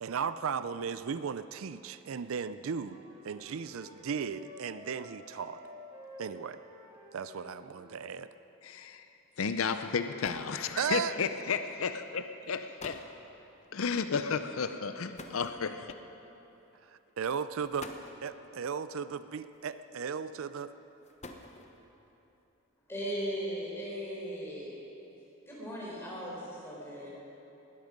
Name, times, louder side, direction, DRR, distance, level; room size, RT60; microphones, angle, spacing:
voice 1, 0.0-5.6 6.2-6.6 7.1-8.3 10.8-11.1 16.8-17.9 18.2-20.7, right 6 dB, 75° right, 13 dB, 0.4 m, -36 dB
Wind instrument woodwind instrument, 2.6-8.0, equal, 20° right, 2.4 m, -52 dB
voice 2, 8.6-9.0 9.4-13.0 13.7-15.8, left 5 dB, 75° left, 9 dB, 0.6 m, -33 dB
sound 1, 9.6-9.7 10.0-10.6 11.6-11.8 12.4-12.5 12.8-13.1 15.2-16.0 17.0-17.1 17.6-18.3 19.5-20.0 20.9-21.9, left 2 dB, 30° left, 0.9 m, -47 dB
voice 3, 22.9-24.7 25.5-27.1, equal, 10° left, -6 dB, 4.4 m, -37 dB
20.0 x 13.0 x 5.2 m, 3.0 s
head